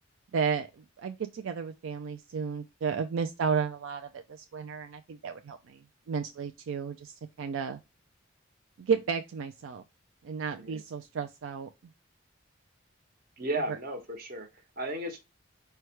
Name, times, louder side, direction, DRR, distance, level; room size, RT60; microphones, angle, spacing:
voice 1, 0.3-7.8 8.8-9.8 10.2-11.7 13.7-13.8, right 6 dB, 80° right, 0.4 m, -33 dB
voice 2, 13.4-14.5 14.8-15.2, right 1 dB, 45° right, 1.1 m, -34 dB
4.5 x 2.2 x 4.5 m
head